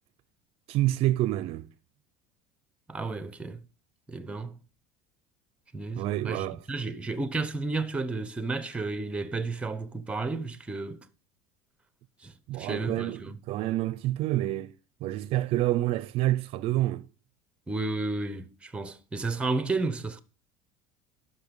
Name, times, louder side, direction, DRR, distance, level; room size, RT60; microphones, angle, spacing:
voice 1, 0.7-1.7 6.0-6.6 12.5-14.7 15.0-17.1, right 15 dB, 50° right, 0.5 m, -28 dB
voice 2, 2.9-3.6 4.1-4.6 5.7-11.1 12.2-13.4 17.7-20.2, right 3 dB, 10° right, 0.7 m, -32 dB
11.0 x 5.8 x 5.2 m
cardioid pair, 155°, 13 cm